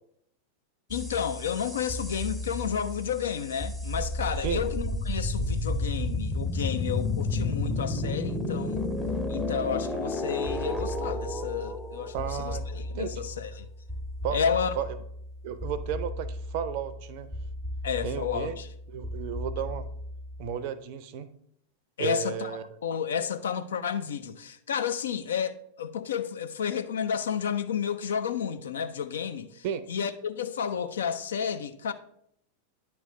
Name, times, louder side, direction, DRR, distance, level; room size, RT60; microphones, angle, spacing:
voice 1, 0.9-8.9 9.3-13.7 14.3-14.7 17.8-18.7 22.0-31.9, left 7 dB, 65° left, 0.4 m, -31 dB
sound 1, 0.9-20.5, left 2 dB, ahead, 0.6 m, -33 dB
voice 2, 12.1-12.6 12.9-13.2 14.2-14.4 14.8-14.9 15.4-17.3 18.0-18.6 18.9-19.9 20.4-21.3 22.0-22.6 29.6-29.8, right 8 dB, 45° right, 0.5 m, -33 dB
9.5 x 3.2 x 5.0 m
figure-of-eight pair, 90°, 0 cm